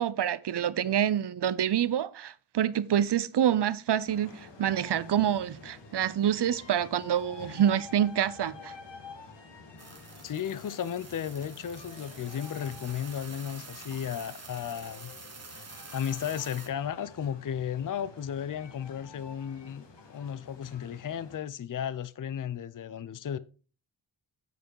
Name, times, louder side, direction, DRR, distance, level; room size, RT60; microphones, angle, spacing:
voice 1, 0.0-8.7, right 10 dB, 60° right, 0.7 m, -27 dB
sound 1, 4.1-21.4, left 4 dB, 60° left, 1.7 m, -49 dB
sound 2, 9.8-16.7, right 4 dB, 30° right, 1.4 m, -48 dB
voice 2, 10.2-15.1 15.5-23.4, left 9 dB, 40° left, 0.6 m, -34 dB
8.1 x 5.0 x 4.7 m
cardioid pair, 50°, 48 cm